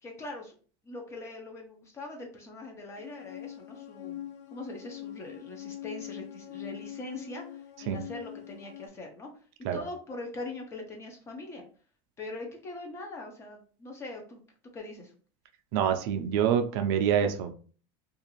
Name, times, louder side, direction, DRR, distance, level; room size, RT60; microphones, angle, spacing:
voice 1, 0.0-0.5 0.8-4.2 4.5-9.3 9.7-11.6 12.2-14.4 14.7-15.1, left 2 dB, 20° left, 2 dB, 0.5 m, -42 dB
sound 1, 3.0-8.9, left 12 dB, 85° left, 0.5 m, -43 dB
voice 2, 15.7-17.5, right 8 dB, 55° right, 6 dB, 0.4 m, -26 dB
2.4 x 2.4 x 2.9 m, 0.41 s
supercardioid pair, 160°, 14 cm